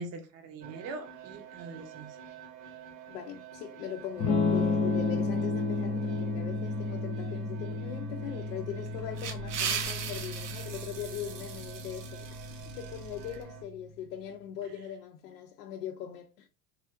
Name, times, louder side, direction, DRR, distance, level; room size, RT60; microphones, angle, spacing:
voice 1, 0.0-2.1, right 3 dB, 35° right, 0.7 m, -42 dB
sound 1, 0.6-13.6, right 8 dB, 65° right, 1.1 m, -49 dB
voice 2, 3.1-16.5, left 9 dB, 75° left, 0.6 m, -40 dB
Electric guitar / Strum, 4.2-14.0, left 3 dB, 15° left, 0.4 m, -33 dB
sound 2, 8.9-13.4, right 7 dB, 90° right, 0.9 m, -38 dB
3.3 x 2.5 x 2.4 m
supercardioid pair, 110°, 46 cm